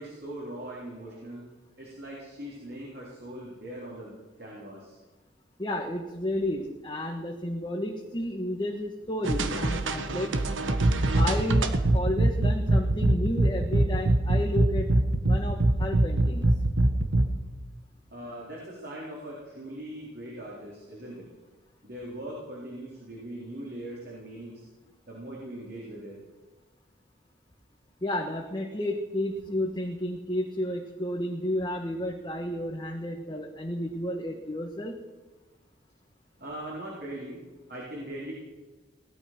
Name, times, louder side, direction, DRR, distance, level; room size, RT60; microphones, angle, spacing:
voice 1, 0.0-1.5 1.8-5.0 18.1-21.3 21.8-24.6 25.1-26.2 36.4-38.3, right 1 dB, 55° right, -5 dB, 4.0 m, -40 dB
voice 2, 5.6-10.4 11.1-14.9 15.2-16.4 28.0-35.0, left 1 dB, 25° left, 0 dB, 1.5 m, -32 dB
sound 1, 9.2-17.3, right 1 dB, 85° right, 1.4 m, -24 dB
18.5 x 12.0 x 6.1 m, 1.3 s
head